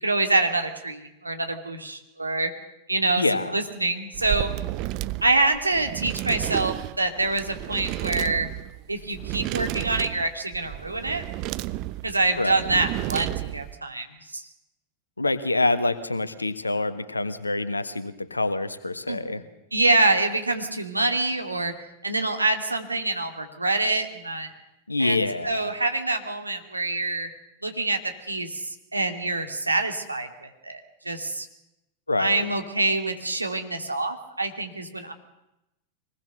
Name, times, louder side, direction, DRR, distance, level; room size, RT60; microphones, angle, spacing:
voice 1, 0.0-2.5 2.9-4.5 5.2-8.5 8.9-11.2 12.0-14.1 14.3-14.5 19.1-19.4 19.7-21.7 22.0-24.5 25.0-27.3 27.6-28.0 28.3-31.5 32.2-35.1, right 2 dB, 85° right, 5 dB, 2.5 m, -26 dB
voice 2, 3.2-3.5 12.4-12.7 15.2-19.4 24.9-25.7 32.1-32.4, left 2 dB, 80° left, 12 dB, 1.5 m, -26 dB
sound 1, 4.1-13.7, right 16 dB, 40° right, 0.8 m, -32 dB
25.0 x 20.0 x 6.8 m, 0.92 s
figure-of-eight pair, 90°, 0 cm